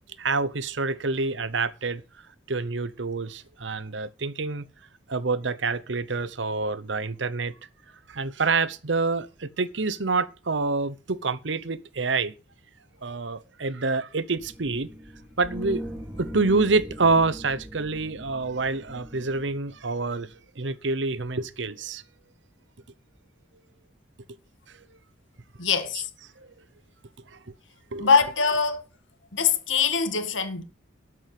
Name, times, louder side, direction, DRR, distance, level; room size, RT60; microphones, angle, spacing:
voice 1, 0.2-2.0 2.5-4.6 5.1-7.5 8.1-12.3 13.0-14.9 15.4-15.9 16.2-22.0 24.7-24.9 25.9-26.0 27.3-27.4 27.9-28.1, right 3 dB, 70° right, 0.9 m, -27 dB
sound 1, 14.4-20.4, right 1 dB, 10° right, 2.6 m, -40 dB
voice 2, 25.6-26.1 28.0-28.8 29.3-30.6, left 5 dB, 85° left, 2.0 m, -23 dB
13.0 x 6.2 x 7.6 m
head